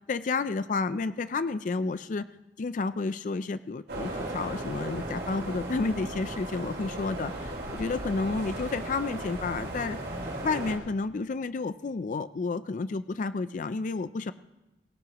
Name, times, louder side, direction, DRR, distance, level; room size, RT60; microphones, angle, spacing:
voice 1, 0.1-2.3 2.6-10.0 10.4-14.3, left 4 dB, 45° left, 13 dB, 0.4 m, -31 dB
sound 1, 3.9-10.8, right 1 dB, 65° right, 5.7 m, -36 dB
23.5 x 16.5 x 3.0 m, 1.0 s
head